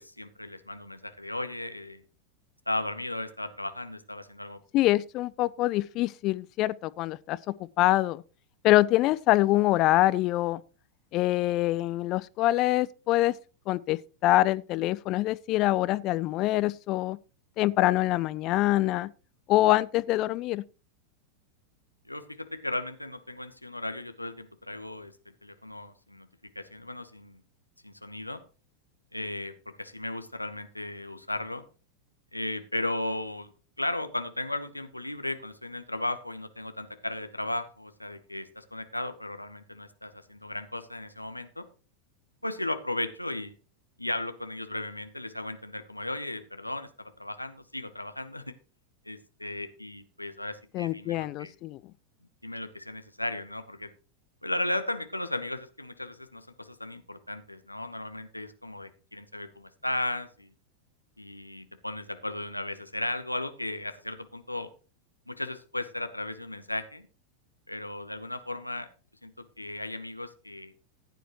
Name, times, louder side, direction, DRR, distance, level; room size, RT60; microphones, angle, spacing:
voice 1, 0.0-2.0 2.7-4.6 22.1-25.1 25.4-26.3 26.5-27.4 27.8-28.4 29.1-29.5 29.8-31.6 32.3-33.5 33.8-41.6 42.4-43.5 44.0-48.4 49.0-51.5 52.4-53.9 54.4-60.5 61.2-64.7 65.3-67.1 67.7-68.9 69.2-70.7, left 1 dB, 85° left, 0.9 m, -35 dB
voice 2, 4.7-8.2 8.6-10.6 11.1-13.3 13.7-17.2 17.6-19.1 19.5-20.6 50.7-51.8, left 16 dB, 40° left, 0.4 m, -25 dB
15.0 x 9.1 x 3.0 m
figure-of-eight pair, 90°, 0 cm